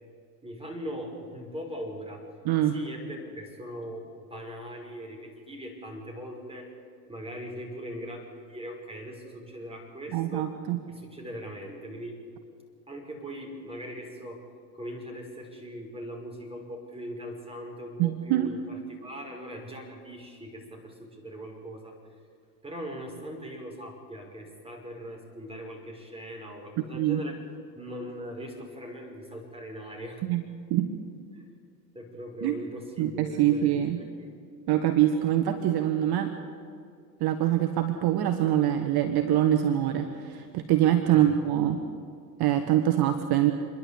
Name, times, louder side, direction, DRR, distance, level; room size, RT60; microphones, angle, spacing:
voice 1, 0.4-2.3 2.7-6.7 7.1-10.5 10.9-12.2 12.9-14.4 14.7-22.0 22.6-27.4 27.8-30.2 31.3-31.5 31.9-33.7 34.0-34.3 41.1-41.3, equal, 10° right, 2 dB, 5.5 m, -40 dB
voice 2, 2.4-2.8 10.1-10.8 18.0-18.5 26.9-27.2 30.2-30.4 30.7-30.9 32.4-32.6 33.0-34.0 34.7-36.3 37.2-41.8 42.4-43.5, right 12 dB, 50° right, 8 dB, 1.5 m, -24 dB
27.5 x 11.0 x 8.6 m, 2.3 s
hypercardioid pair, 85°, 48 cm